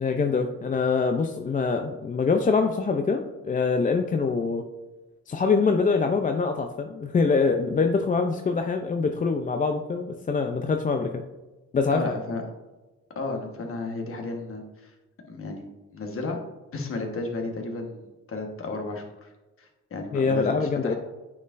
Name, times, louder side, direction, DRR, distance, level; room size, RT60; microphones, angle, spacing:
voice 1, 0.0-4.6 5.3-11.2 11.7-12.1 20.1-21.0, left 4 dB, 25° left, 5 dB, 0.4 m, -24 dB
voice 2, 11.9-12.4 13.1-14.9 15.3-16.4 16.7-19.3 19.6-20.9, left 3 dB, 45° left, 3 dB, 1.3 m, -33 dB
8.4 x 4.4 x 2.5 m, 1.1 s
cardioid pair, 90°, 30 cm